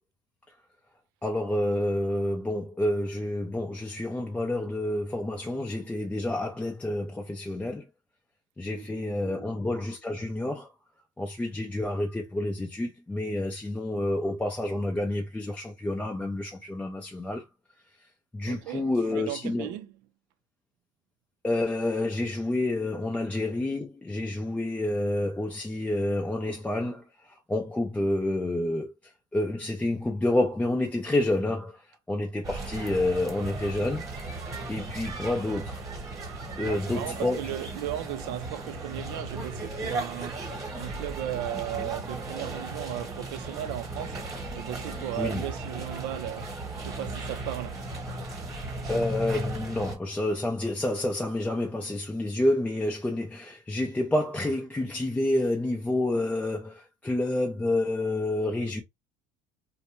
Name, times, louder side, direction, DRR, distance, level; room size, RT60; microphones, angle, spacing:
voice 1, 1.2-7.9 8.6-10.7 11.2-17.5 18.3-19.7 21.4-28.9 29.3-31.8 32.1-34.1 34.7-35.8 36.6-37.4 45.2-45.4 48.9-58.8, left 1 dB, 10° left, 0.4 m, -29 dB
voice 2, 8.7-9.5 18.5-20.0 36.6-40.5 40.8-44.2 44.5-47.9, right 13 dB, 70° right, 0.5 m, -36 dB
sound 1, 32.4-49.9, right 2 dB, 20° right, 1.2 m, -36 dB
2.6 x 2.2 x 2.9 m
cardioid pair, 130°, 17 cm